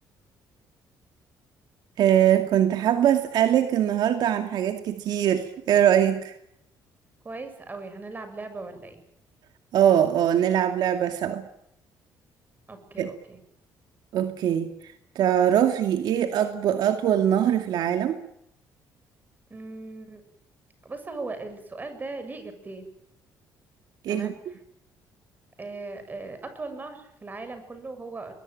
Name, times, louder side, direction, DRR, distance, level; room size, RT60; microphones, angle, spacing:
voice 1, 2.0-6.3 9.7-11.5 13.0-13.1 14.1-14.7 15.2-18.2 24.0-24.3, right 10 dB, 70° right, 6 dB, 2.4 m, -22 dB
voice 2, 7.2-9.0 12.7-13.4 19.5-20.2 20.8-22.9 24.1-24.4 25.6-28.3, right 3 dB, 25° right, 9 dB, 7.2 m, -38 dB
22.5 x 21.5 x 9.1 m, 0.75 s
cardioid pair, 105°, 7 cm